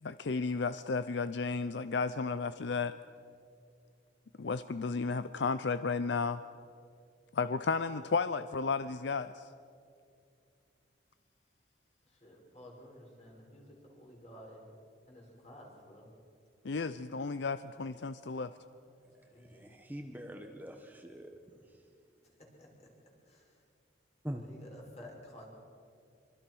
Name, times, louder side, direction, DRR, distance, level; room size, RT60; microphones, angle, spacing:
voice 1, 0.0-3.0 4.4-6.4 7.3-9.5 16.6-18.5, left 4 dB, 70° left, 13 dB, 0.6 m, -33 dB
voice 2, 12.0-14.7 15.1-16.1 19.0-19.8 22.2-22.9 23.2-23.6 24.4-25.4, left 1 dB, 35° left, -1 dB, 5.8 m, -53 dB
voice 3, 19.4-21.3 24.2-24.4, equal, 10° right, 3 dB, 1.2 m, -43 dB
25.5 x 24.0 x 6.2 m, 2.4 s
head